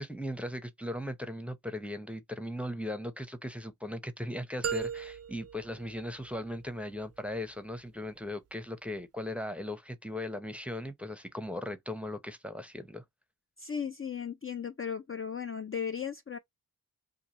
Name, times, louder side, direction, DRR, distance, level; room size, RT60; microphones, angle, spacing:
voice 1, 0.0-13.0, left 1 dB, 5° right, 0.7 m, -38 dB
sound 1, 4.6-6.7, right 7 dB, 45° right, 0.4 m, -37 dB
voice 2, 13.6-16.4, left 7 dB, 35° left, 0.4 m, -36 dB
2.8 x 2.6 x 3.9 m
wide cardioid pair, 75°, 36 cm